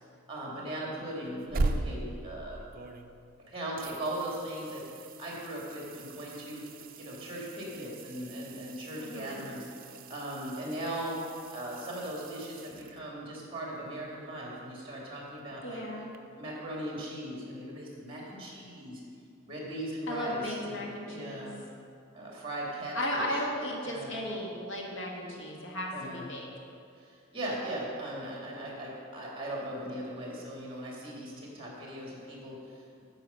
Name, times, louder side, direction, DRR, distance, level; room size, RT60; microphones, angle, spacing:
voice 1, 0.3-2.7 3.5-6.6 7.0-9.7 10.1-11.2 11.5-15.8 16.4-19.0 19.4-21.6 22.1-23.4 23.8-24.1 25.9-26.3 27.0-33.0, right 1 dB, 25° right, -3 dB, 2.2 m, -39 dB
sound 1, 1.2-3.4 3.8-13.4 16.1-16.2, right 2 dB, 40° right, 0.5 m, -40 dB
voice 2, 8.9-9.5 15.6-16.1 20.1-21.5 22.9-26.5, left 1 dB, 70° left, -2 dB, 1.7 m, -35 dB
9.7 x 7.2 x 5.5 m, 2.4 s
head